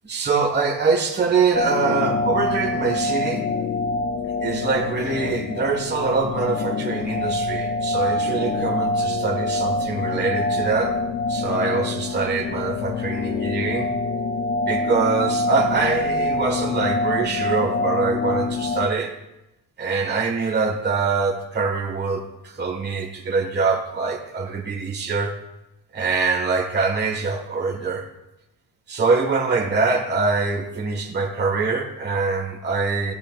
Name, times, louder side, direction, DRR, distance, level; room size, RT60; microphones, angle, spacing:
voice 1, 0.1-3.5 4.4-11.0 11.3-13.9 14.6-19.1 19.8-25.4 25.9-28.1 28.9-33.1, right 4 dB, 25° right, 2 dB, 1.6 m, -24 dB
sound 1, 1.5-18.9, left 2 dB, 30° left, 0.6 m, -25 dB
16.5 x 16.5 x 2.5 m, 0.92 s
cardioid pair, 180°, 41 cm